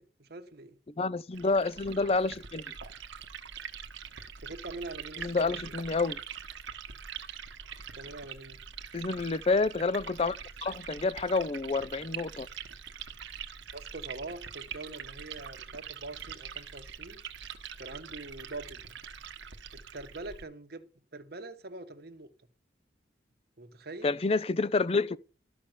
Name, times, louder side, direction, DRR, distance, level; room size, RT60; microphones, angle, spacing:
voice 1, 0.0-0.8 4.4-5.6 7.9-8.6 13.7-17.2 17.8-19.0 19.7-20.9 21.1-22.3 23.6-24.2, right 2 dB, 55° right, 1.1 m, -44 dB
voice 2, 1.0-2.6 5.2-6.2 8.9-12.5 24.0-25.2, left 3 dB, 30° left, 0.4 m, -29 dB
Liquid, 1.3-20.4, right 7 dB, 80° right, 1.2 m, -44 dB
13.0 x 5.8 x 6.5 m
head